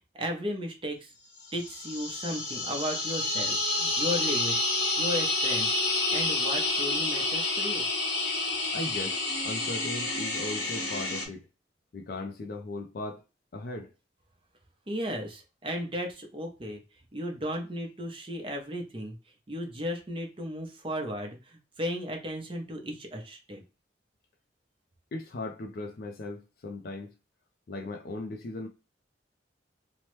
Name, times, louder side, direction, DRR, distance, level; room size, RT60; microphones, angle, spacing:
voice 1, 0.1-1.1 1.5-4.7 5.0-5.8 6.1-7.8 14.9-16.8 17.1-19.2 19.5-23.6, equal, 30° right, 0.6 m, -35 dB
sound 1, 1.5-11.3, left 2 dB, 85° left, 0.9 m, -29 dB
voice 2, 8.7-9.2 9.4-11.5 11.9-13.2 13.5-13.9 25.1-27.1 27.7-28.7, left 2 dB, 55° left, 0.4 m, -37 dB
2.9 x 2.1 x 3.0 m
head